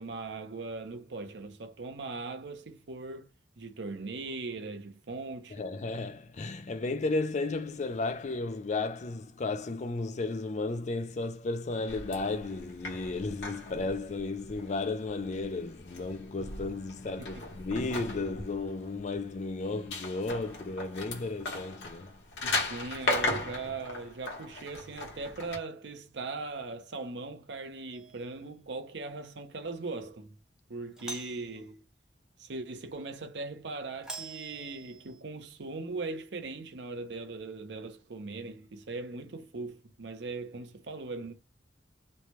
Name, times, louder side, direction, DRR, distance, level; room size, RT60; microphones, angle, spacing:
voice 1, 0.0-3.3 3.6-5.6 17.2-17.4 22.4-30.4 30.7-31.8 32.4-41.3, right 3 dB, 75° right, 0.6 m, -39 dB
voice 2, 5.5-22.2, left 3 dB, 40° left, 0.4 m, -34 dB
sound 1, 11.9-25.6, left 2 dB, 75° left, 1.1 m, -38 dB
Doorbell, 27.9-28.4 30.9-31.6 34.0-35.2, right 2 dB, 5° right, 0.6 m, -44 dB
3.2 x 2.2 x 2.8 m
head